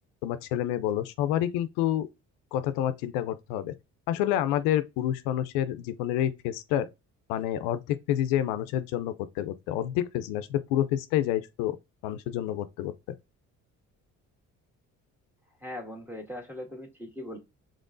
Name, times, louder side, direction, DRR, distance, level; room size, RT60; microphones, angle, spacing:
voice 1, 0.2-2.1 2.5-3.7 4.1-6.9 7.3-11.8 12.0-12.9, left 11 dB, 85° left, 0.5 m, -28 dB
voice 2, 15.6-17.4, left 1 dB, 5° right, 1.7 m, -40 dB
5.2 x 3.7 x 2.5 m
supercardioid pair, 55°, 37 cm